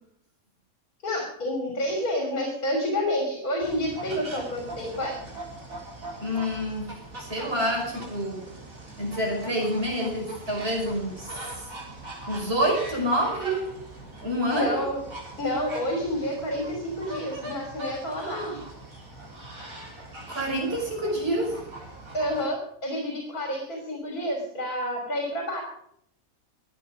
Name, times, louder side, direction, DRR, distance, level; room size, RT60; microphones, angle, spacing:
voice 1, 1.0-5.2 14.5-15.0 15.4-18.6 22.1-25.6, equal, 80° left, 1 dB, 3.7 m, -29 dB
sound 1, 3.6-22.4, right 1 dB, 65° right, 4.4 m, -41 dB
voice 2, 6.2-6.9 7.2-8.4 9.0-11.5 12.3-13.6 14.2-14.9 18.2-18.6 20.3-21.5, equal, 40° right, -1 dB, 5.6 m, -27 dB
24.0 x 8.5 x 5.0 m, 0.71 s
omnidirectional pair, 1.5 m